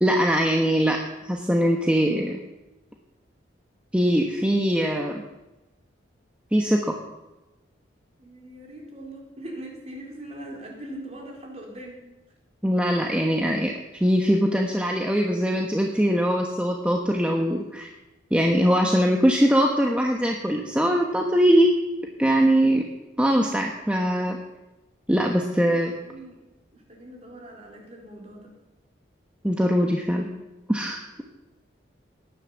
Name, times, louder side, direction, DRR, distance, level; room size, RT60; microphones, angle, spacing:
voice 1, 0.0-1.0 1.2-2.4 3.9-5.2 6.5-6.9 12.6-13.7 14.0-17.9 18.3-21.7 22.2-22.8 23.2-24.4 25.1-25.9 29.4-30.3 30.7-31.0, equal, 5° right, 1 dB, 1.1 m, -21 dB
voice 2, 8.2-12.1 25.6-26.4 26.7-28.6, right 1 dB, 35° right, -1 dB, 4.3 m, -41 dB
18.5 x 11.0 x 7.1 m, 1.0 s
head